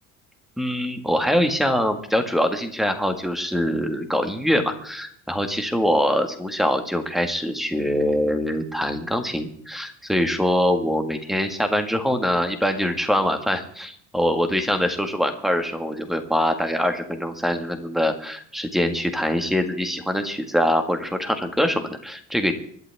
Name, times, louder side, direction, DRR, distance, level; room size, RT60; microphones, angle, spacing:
voice 1, 0.6-22.5, equal, ahead, 6 dB, 1.7 m, -23 dB
25.0 x 12.0 x 3.5 m, 0.63 s
cardioid pair, 155°, 31 cm